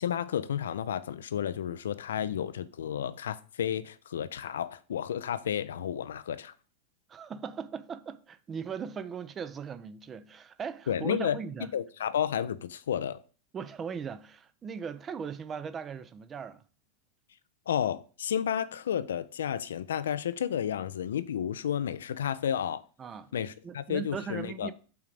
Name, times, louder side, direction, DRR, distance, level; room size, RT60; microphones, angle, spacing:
voice 1, 0.0-6.5 10.9-11.4 11.7-13.2 17.7-22.8 23.3-24.7, left 9 dB, 65° left, 0.4 m, -32 dB
voice 2, 7.1-11.7 13.5-16.6 23.0-23.3 23.6-24.7, right 6 dB, 25° right, 0.4 m, -38 dB
5.8 x 3.8 x 5.0 m
figure-of-eight pair, 90°, 0 cm